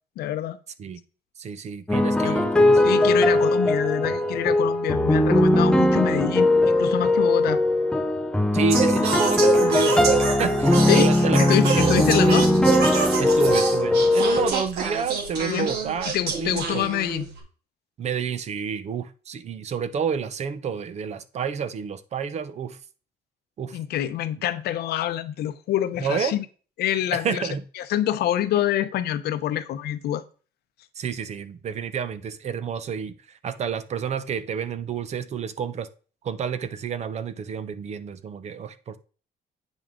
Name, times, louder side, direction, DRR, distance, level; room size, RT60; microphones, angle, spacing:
voice 1, 0.2-0.6 2.2-2.4 2.8-7.6 10.9-11.1 11.4-12.5 15.4-15.7 16.1-17.3 23.7-26.4 26.8-27.4 27.8-30.2, left 12 dB, 80° left, 0.8 m, -26 dB
voice 2, 1.4-3.5 8.5-12.4 13.2-16.9 18.0-22.8 23.6-23.8 26.0-26.4 27.1-27.6 31.0-35.9 36.2-39.0, right 6 dB, 45° right, 0.8 m, -29 dB
sound 1, 1.9-14.5, left 1 dB, 5° left, 0.8 m, -20 dB
Singing, 8.7-17.4, right 6 dB, 80° right, 2.6 m, -27 dB
8.9 x 6.2 x 3.7 m
cardioid pair, 155°, 16 cm